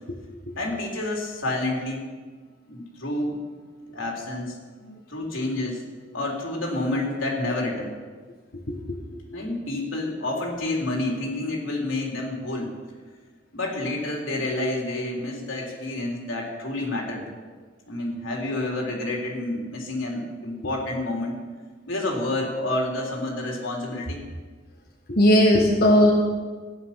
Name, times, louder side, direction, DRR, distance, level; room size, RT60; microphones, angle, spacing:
voice 1, 0.6-2.1 2.7-3.4 3.9-4.6 5.1-5.8 6.1-7.9 9.3-12.7 13.5-17.3 17.9-21.4 21.9-24.2, left 2 dB, 90° left, -2 dB, 3.6 m, -29 dB
voice 2, 25.1-26.1, equal, 50° left, -2 dB, 1.7 m, -17 dB
15.5 x 11.0 x 5.9 m, 1.5 s
head